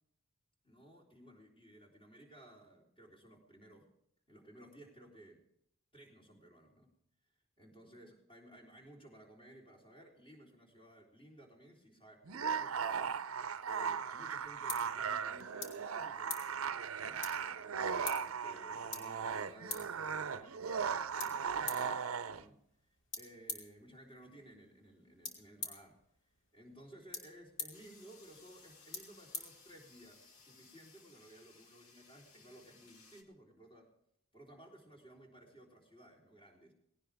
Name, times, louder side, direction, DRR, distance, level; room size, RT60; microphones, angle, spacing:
voice 1, 0.6-3.9 4.3-5.4 5.9-6.9 7.6-13.2 13.7-22.1 22.4-22.6 23.2-26.0 26.5-33.9 34.3-36.7, right 1 dB, 25° left, -1 dB, 3.8 m, -58 dB
sound 1, 12.3-22.4, right 6 dB, 80° right, 0.6 m, -37 dB
sound 2, 13.9-30.2, left 4 dB, 60° left, 3.1 m, -49 dB
sound 3, 27.7-33.2, left 4 dB, 90° left, 2.1 m, -61 dB
19.0 x 17.5 x 3.5 m, 0.75 s
head